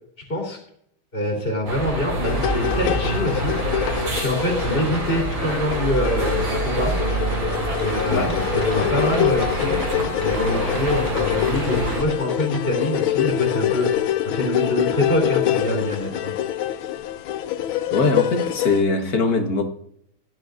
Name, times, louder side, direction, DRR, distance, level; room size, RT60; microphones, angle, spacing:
voice 1, 1.1-3.7 4.1-7.0 7.8-9.8 10.2-16.3, left 1 dB, 25° left, -3 dB, 3.3 m, -25 dB
sound 1, 1.7-12.0, right 2 dB, 65° right, 3.6 m, -26 dB
sound 2, 2.2-18.8, left 12 dB, 85° left, 1.5 m, -25 dB
sound 3, 7.8-13.4 13.7-13.8, left 1 dB, 10° left, 1.5 m, -37 dB
voice 2, 17.9-19.6, left 3 dB, 50° left, 4 dB, 2.0 m, -21 dB
18.0 x 12.0 x 2.7 m, 0.69 s
omnidirectional pair, 2.2 m